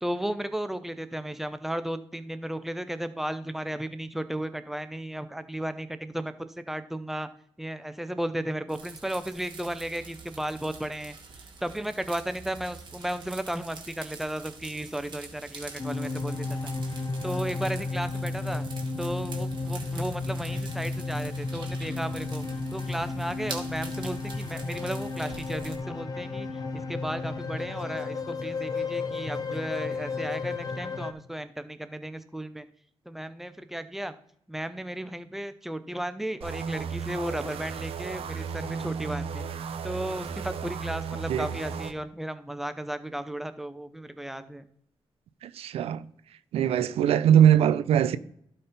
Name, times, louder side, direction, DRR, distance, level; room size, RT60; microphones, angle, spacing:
voice 1, 0.0-6.3 6.7-7.3 7.6-11.2 11.6-16.7 17.2-18.7 19.0-22.4 22.7-26.5 26.7-32.7 33.1-34.1 34.5-39.4 39.8-44.7, right 1 dB, 5° right, 0.7 m, -34 dB
sound 1, 8.7-25.8, right 4 dB, 50° right, 2.1 m, -45 dB
sound 2, 15.8-31.1, left 3 dB, 40° left, 1.0 m, -33 dB
sound 3, 36.4-41.9, right 6 dB, 75° right, 0.9 m, -35 dB
voice 2, 45.4-46.0 46.5-48.2, right 9 dB, 90° right, 0.5 m, -21 dB
12.0 x 4.5 x 5.3 m
cardioid pair, 100°, 10 cm